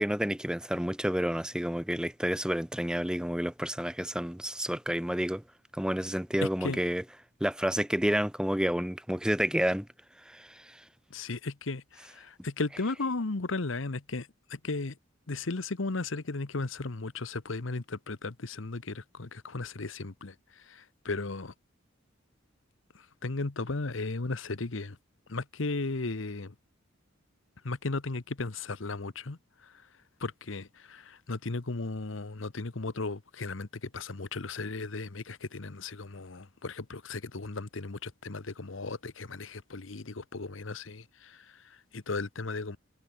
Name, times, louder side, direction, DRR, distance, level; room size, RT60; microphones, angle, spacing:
voice 1, 0.0-5.4 5.7-7.0 7.4-9.9 10.3-10.8, equal, 5° right, 1.1 m, -30 dB
voice 2, 6.4-6.8 11.1-15.0 15.3-21.5 23.2-25.0 25.3-26.5 27.6-29.7 30.2-42.8, left 3 dB, 75° left, 1.1 m, -36 dB
head